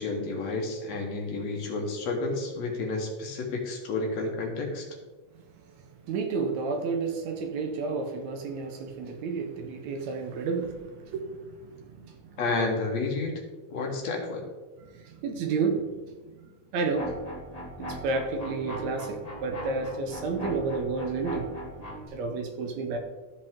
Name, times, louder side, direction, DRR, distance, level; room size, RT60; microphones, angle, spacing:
voice 1, 0.0-4.9 12.4-13.4 13.7-14.5, left 3 dB, 65° left, 1 dB, 2.2 m, -30 dB
voice 2, 6.1-10.8 11.1-11.2 15.2-15.8 16.7-17.1 18.0-21.5 22.1-23.0, right 4 dB, 75° right, 4 dB, 1.8 m, -30 dB
sound 1, 16.9-22.1, equal, 20° left, 0.9 m, -39 dB
13.5 x 5.1 x 3.6 m, 1.3 s
omnidirectional pair, 3.6 m